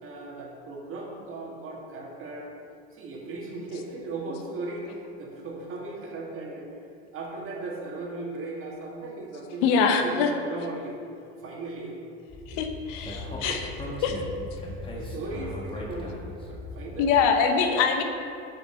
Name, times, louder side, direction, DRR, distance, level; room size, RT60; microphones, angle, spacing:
voice 1, 0.0-2.5 2.9-6.7 7.1-11.0 11.4-12.0 12.5-12.6 13.2-13.7 14.1-14.2 14.6-16.2 16.5-17.2, right 2 dB, 40° right, -1 dB, 1.7 m, -37 dB
voice 2, 9.6-10.3 12.5-13.7 14.0-14.2 17.0-18.0, left 6 dB, 65° left, 6 dB, 0.8 m, -23 dB
Speech, 12.3-17.2, left 1 dB, 15° left, 1.2 m, -38 dB
7.0 x 6.1 x 4.3 m, 2.5 s
hypercardioid pair, 100°, 33 cm